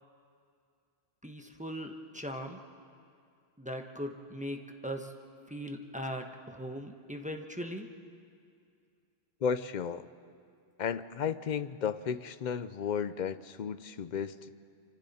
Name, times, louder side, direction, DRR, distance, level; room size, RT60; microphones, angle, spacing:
voice 1, 1.2-2.6 3.6-5.1 5.5-7.9, equal, 5° right, 3 dB, 1.1 m, -39 dB
voice 2, 9.4-10.1 10.8-14.6, left 7 dB, 50° left, 14 dB, 0.7 m, -34 dB
27.5 x 25.5 x 4.3 m, 2.4 s
omnidirectional pair, 1.1 m